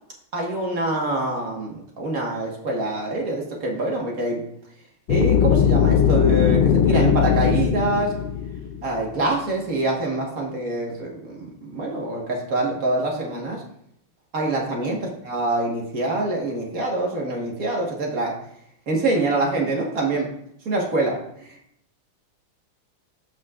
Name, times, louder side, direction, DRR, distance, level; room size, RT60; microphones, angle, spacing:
voice 1, 0.3-4.4 5.1-8.2 8.8-13.6 14.3-18.4 18.9-20.3 20.7-21.5, right 2 dB, 45° right, -1 dB, 1.8 m, -25 dB
sound 1, 5.1-9.0, left 8 dB, 90° left, 1.6 m, -19 dB
13.5 x 5.7 x 2.4 m, 0.71 s
omnidirectional pair, 2.4 m